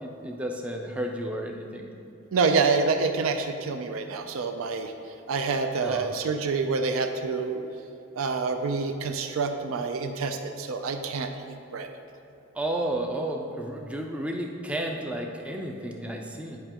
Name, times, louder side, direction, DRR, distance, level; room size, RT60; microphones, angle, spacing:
voice 1, 0.0-1.9 5.8-6.1 12.5-16.6, right 1 dB, 5° right, 1 dB, 0.4 m, -32 dB
voice 2, 2.3-4.9 5.3-7.6 8.2-11.9, right 4 dB, 75° right, 7 dB, 0.4 m, -27 dB
9.0 x 5.3 x 2.9 m, 2.8 s
head